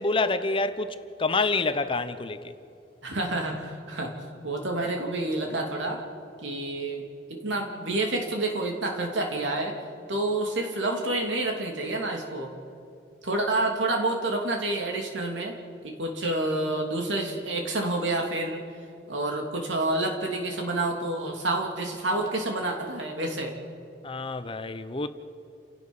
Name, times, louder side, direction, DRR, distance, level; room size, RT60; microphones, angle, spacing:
voice 1, 0.0-2.5 24.0-25.1, left 3 dB, 30° left, 0.8 m, -27 dB
voice 2, 3.0-4.2 4.4-6.1 6.4-7.0 7.3-9.8 10.1-12.5 13.2-15.6 15.8-18.6 19.1-23.6, right 2 dB, 85° right, 2.9 m, -28 dB
29.0 x 17.5 x 5.5 m
head